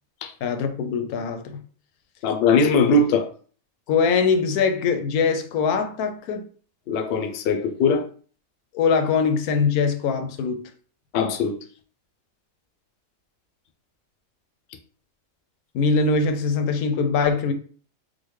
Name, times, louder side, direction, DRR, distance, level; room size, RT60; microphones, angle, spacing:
voice 1, 0.4-1.6 3.9-6.5 8.7-10.7 15.7-17.5, left 5 dB, 90° left, 1.1 m, -22 dB
voice 2, 2.2-3.3 6.9-8.1 11.1-11.6, left 3 dB, 65° left, 0.6 m, -20 dB
3.8 x 2.1 x 3.1 m
omnidirectional pair, 1.5 m